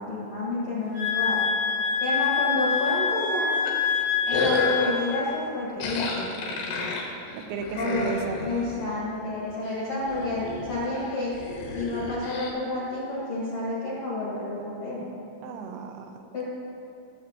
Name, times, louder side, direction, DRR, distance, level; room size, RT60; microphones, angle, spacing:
voice 1, 0.0-1.4 2.0-3.5 4.3-6.9 7.8-8.1 8.4-11.3 11.7-15.0 16.3-16.4, left 2 dB, 60° left, -8 dB, 1.7 m, -30 dB
sound 1, 0.9-5.2, left 6 dB, 65° right, 2.2 m, -26 dB
sound 2, 3.7-5.1 5.8-8.8 9.3-9.7 10.0-12.5, left 3 dB, 75° left, 3.5 m, -32 dB
voice 2, 7.3-8.5 15.4-16.1, right 5 dB, 85° right, 5 dB, 3.2 m, -33 dB
17.5 x 7.3 x 3.0 m, 2.6 s
omnidirectional pair, 5.7 m